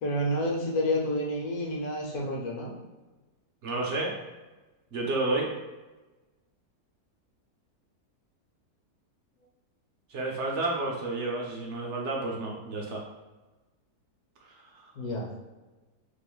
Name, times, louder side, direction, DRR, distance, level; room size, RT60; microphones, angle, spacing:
voice 1, 0.0-2.7 15.0-15.3, left 1 dB, 70° left, 0 dB, 1.2 m, -29 dB
voice 2, 3.6-4.2 4.9-5.5 10.1-13.0 14.4-14.9, right 2 dB, 65° right, -1 dB, 0.7 m, -31 dB
2.9 x 2.4 x 3.8 m, 1.2 s
omnidirectional pair, 1.7 m